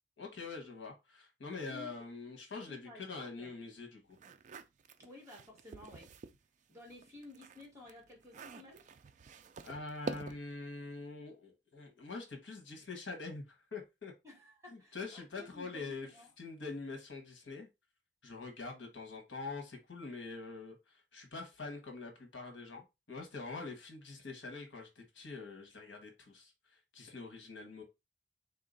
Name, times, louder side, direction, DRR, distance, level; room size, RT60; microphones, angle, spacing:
voice 1, 0.2-4.2 9.6-14.1 14.7-16.1 16.4-17.7 18.2-27.8, left 3 dB, 75° left, 1.2 m, -45 dB
voice 2, 2.7-3.5 5.0-6.1 6.7-8.8 14.2-16.3, left 2 dB, 15° right, 1.6 m, -53 dB
sound 1, 4.1-6.4 6.8-10.6, right 3 dB, 40° right, 0.3 m, -47 dB
3.5 x 2.8 x 3.9 m
head